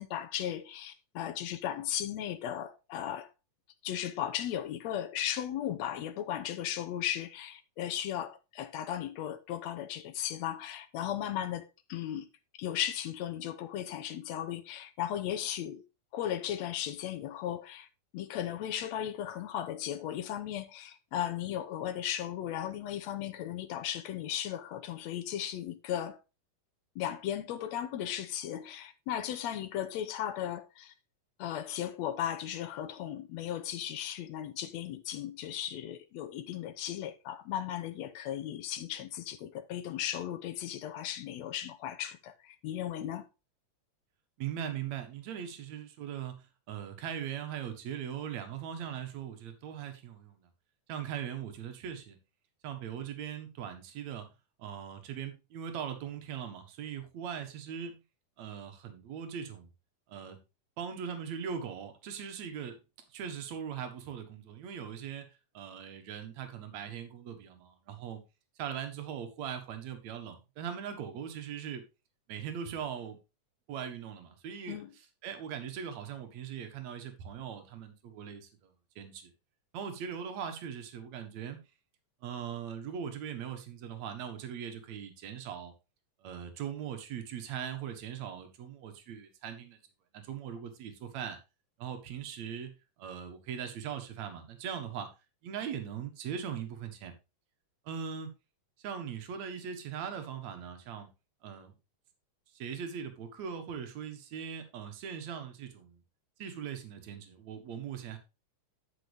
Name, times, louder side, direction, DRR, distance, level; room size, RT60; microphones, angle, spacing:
voice 1, 0.0-3.3 3.8-12.3 12.6-15.8 16.1-17.9 18.1-26.2 26.9-30.9 31.4-43.3 74.7-74.9, left 11 dB, 75° left, 1.7 m, -36 dB
voice 2, 44.4-46.4 46.7-50.5 50.9-52.2 52.6-54.3 54.6-58.0 58.4-59.7 60.1-60.4 60.8-62.8 63.1-65.3 65.5-68.2 68.6-71.8 72.3-73.2 73.7-74.8 75.2-79.3 79.7-81.6 82.2-85.7 86.2-89.8 90.1-91.4 91.8-92.7 93.0-95.1 95.4-97.1 97.9-98.3 98.8-101.1 101.4-101.8 102.5-106.0 106.4-108.2, right 8 dB, 60° right, 2.7 m, -40 dB
10.5 x 6.2 x 3.4 m
omnidirectional pair, 3.7 m